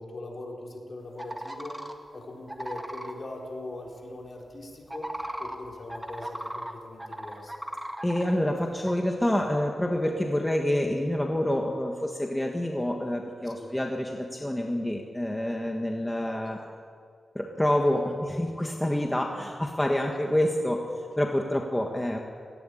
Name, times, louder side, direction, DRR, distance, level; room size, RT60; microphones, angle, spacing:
voice 1, 0.0-1.8 2.1-7.5 13.4-13.7 16.2-16.4, left 2 dB, 45° left, -1 dB, 4.2 m, -41 dB
sound 1, 1.2-1.9 2.5-3.1 4.8-6.7 7.0-8.3 8.8-8.9, right 1 dB, 10° right, 1.7 m, -36 dB
voice 2, 8.0-16.6 17.3-20.8 21.2-22.2, left 1 dB, 10° left, 1 dB, 1.5 m, -27 dB
18.0 x 17.0 x 9.9 m, 2.1 s
wide cardioid pair, 135°, 0 cm